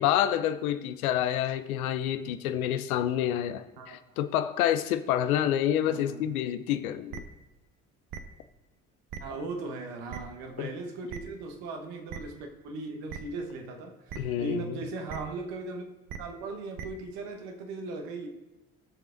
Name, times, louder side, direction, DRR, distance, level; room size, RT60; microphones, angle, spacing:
voice 1, 0.0-7.2 10.6-10.7 14.2-14.8, left 11 dB, 80° left, 11 dB, 0.6 m, -28 dB
voice 2, 3.8-4.2 5.9-6.3 9.2-15.8 16.2-18.3, right 3 dB, 70° right, 3 dB, 1.2 m, -38 dB
sound 1, 7.1-7.2 8.1-8.2 9.1-9.2 10.1-10.2 11.1-11.2 12.1-12.2 13.1-13.2 14.1-14.2 15.1-15.2 16.1-16.2 16.8-16.9, right 7 dB, 50° right, 0.9 m, -38 dB
18.5 x 6.7 x 2.5 m, 1.0 s
hypercardioid pair, 50°, 42 cm